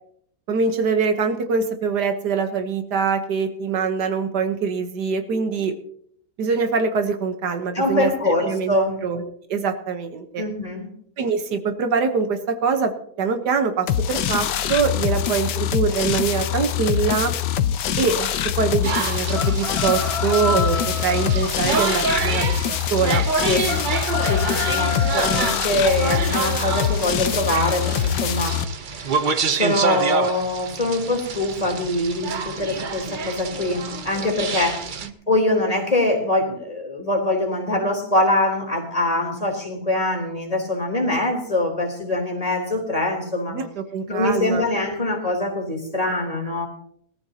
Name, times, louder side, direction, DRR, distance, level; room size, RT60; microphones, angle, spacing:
voice 1, 0.5-5.7 6.4-8.7 9.0-10.4 11.2-12.9 13.2-17.3 18.0-23.2 43.5-44.7, right 5 dB, 75° right, 7 dB, 1.7 m, -24 dB
voice 2, 7.7-9.0 10.4-10.9 23.4-23.7 24.2-28.6 28.9-43.6 44.1-46.7, left 1 dB, 20° left, -1 dB, 3.6 m, -23 dB
sound 1, 13.9-28.6, left 10 dB, 85° left, 1.4 m, -24 dB
sound 2, 18.8-35.1, right 5 dB, 55° right, 0.5 m, -27 dB
sound 3, 19.3-21.5 23.6-25.7, left 6 dB, 60° left, 3.4 m, -29 dB
20.5 x 14.0 x 2.8 m, 0.65 s
omnidirectional pair, 1.8 m